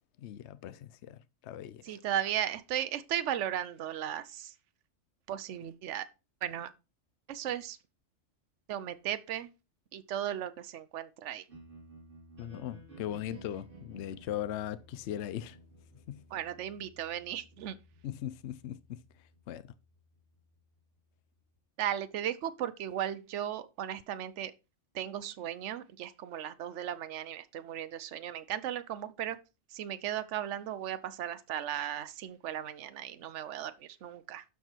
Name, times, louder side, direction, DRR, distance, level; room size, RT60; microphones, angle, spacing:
voice 1, 0.2-2.0 12.4-15.6 16.1-16.2 18.0-19.0 19.5-19.7, left 11 dB, 65° left, 0.9 m, -39 dB
voice 2, 1.8-4.5 5.3-6.1 6.4-6.7 7.3-7.8 8.7-9.5 9.9-11.4 16.3-17.8 21.8-24.5 24.9-29.4 29.7-34.4, right 11 dB, 70° right, 1.0 m, -36 dB
sound 1, 11.5-21.6, right 2 dB, 45° right, 3.1 m, -56 dB
12.0 x 4.9 x 4.4 m
omnidirectional pair, 1.3 m